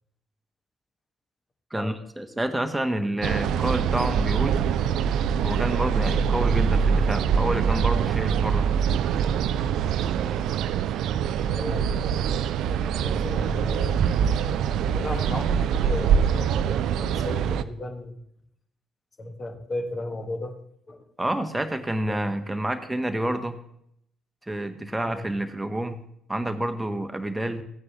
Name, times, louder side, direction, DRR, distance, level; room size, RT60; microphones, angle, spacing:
voice 1, 1.7-4.6 5.4-8.9 21.2-23.6 24.5-26.0 26.3-27.6, right 1 dB, 10° right, 8 dB, 1.1 m, -29 dB
sound 1, 3.2-17.6, right 7 dB, 60° right, 0.4 m, -24 dB
voice 2, 11.5-12.1 13.0-14.4 14.9-18.2 19.2-20.6 20.9-21.1 22.1-22.7 25.1-25.3, left 1 dB, 35° left, 5 dB, 1.5 m, -35 dB
15.0 x 9.5 x 3.0 m, 0.73 s
figure-of-eight pair, 45°, 0 cm